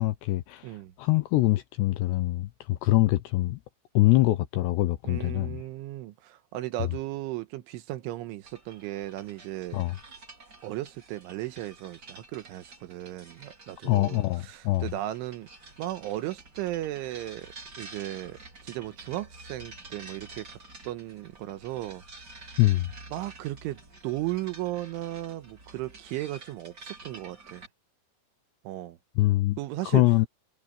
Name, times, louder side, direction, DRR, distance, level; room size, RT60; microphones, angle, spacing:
voice 1, 0.0-3.6 3.9-5.6 9.7-10.0 13.8-14.9 22.6-22.9 29.2-30.3, left 18 dB, 80° left, 2.6 m, -24 dB
voice 2, 5.0-9.8 10.6-15.5 15.8-20.6 20.9-22.0 22.3-22.6 23.1-27.7 28.6-29.0 29.6-30.0, right 15 dB, 80° right, 3.4 m, -36 dB
sound 1, 8.4-27.7, right 2 dB, 20° right, 4.1 m, -49 dB
omnidirectional pair, 5.7 m